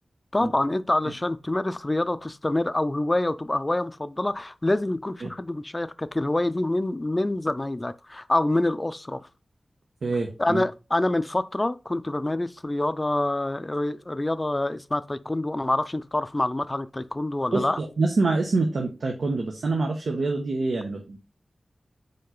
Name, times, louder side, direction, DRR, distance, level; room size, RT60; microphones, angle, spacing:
voice 1, 0.3-9.3 10.4-17.8, left 1 dB, 25° left, 0.5 m, -26 dB
voice 2, 10.0-10.6 17.5-21.2, right 3 dB, 85° right, 1.1 m, -26 dB
5.5 x 4.6 x 3.8 m
wide cardioid pair, 95°, 0 cm